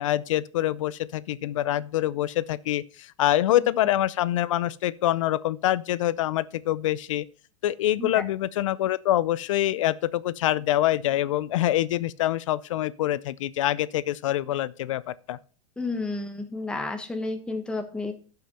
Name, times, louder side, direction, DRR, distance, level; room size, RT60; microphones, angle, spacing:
voice 1, 0.0-7.2 7.6-15.4, left 13 dB, 85° left, 0.5 m, -25 dB
voice 2, 15.8-18.1, left 3 dB, 5° left, 1.3 m, -31 dB
12.5 x 5.8 x 4.2 m
supercardioid pair, 140°, 16 cm